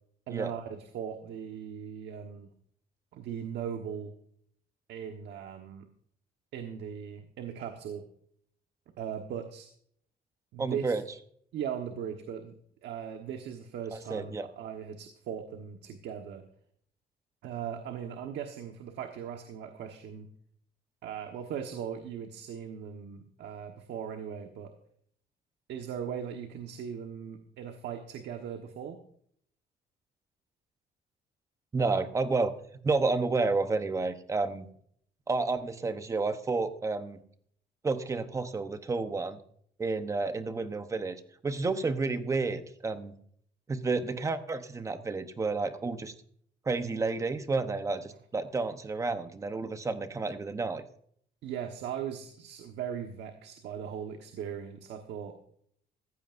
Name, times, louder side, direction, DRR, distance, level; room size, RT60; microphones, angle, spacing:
voice 1, 0.3-2.5 3.1-4.1 4.9-5.9 6.5-8.0 9.0-9.7 10.5-11.0 11.5-12.5 12.8-16.4 17.4-20.3 21.0-24.7 25.7-29.0 51.4-55.4, right 8 dB, 80° right, 6 dB, 1.3 m, -39 dB
voice 2, 10.6-11.0 14.1-14.5 31.7-32.5 32.8-34.7 35.3-37.2 37.8-39.4 39.8-41.2 41.4-43.1 43.7-46.1 46.6-50.8, right 3 dB, 15° right, 10 dB, 0.8 m, -30 dB
15.0 x 15.0 x 2.6 m, 0.64 s
cardioid pair, 175°, 18 cm